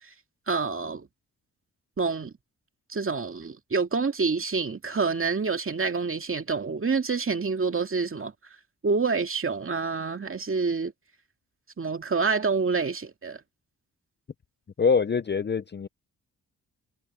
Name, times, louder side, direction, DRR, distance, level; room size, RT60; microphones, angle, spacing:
voice 1, 0.5-1.1 2.0-2.3 2.9-8.3 8.8-10.9 11.8-13.4, right 4 dB, 35° right, 2.3 m, -27 dB
voice 2, 14.8-15.9, left 5 dB, 30° left, 0.6 m, -24 dB
cardioid pair, 70°, 36 cm